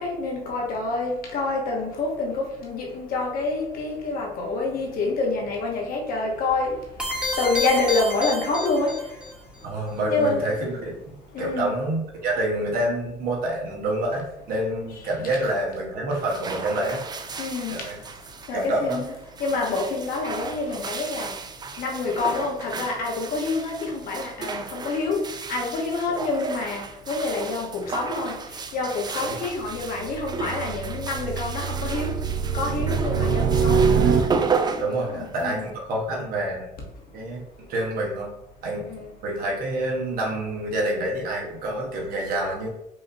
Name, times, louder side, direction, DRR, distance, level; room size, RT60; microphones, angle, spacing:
voice 1, 0.0-6.7 7.4-8.9 10.1-10.4 11.3-11.7 17.4-17.8 18.5-19.1 19.4-21.3 21.8-25.2 25.5-28.3 28.7-32.1 32.5-33.8 35.1-35.7 38.9-39.1, left 3 dB, 70° left, 0 dB, 1.0 m, -27 dB
sound 1, 7.0-9.3, left 1 dB, 5° right, 0.9 m, -29 dB
voice 2, 9.6-10.9 11.4-17.0 17.7-18.0 18.5-19.0 29.2-29.4 34.8-36.6 37.1-37.4 37.7-38.3 38.6-38.9 39.2-42.7, right 1 dB, 70° right, -2 dB, 1.1 m, -27 dB
sound 2, 16.1-35.7, right 5 dB, 25° right, 0.4 m, -34 dB
sound 3, 29.5-34.8, right 6 dB, 90° right, 0.5 m, -24 dB
4.8 x 2.6 x 2.6 m, 0.85 s
supercardioid pair, 80°, 16 cm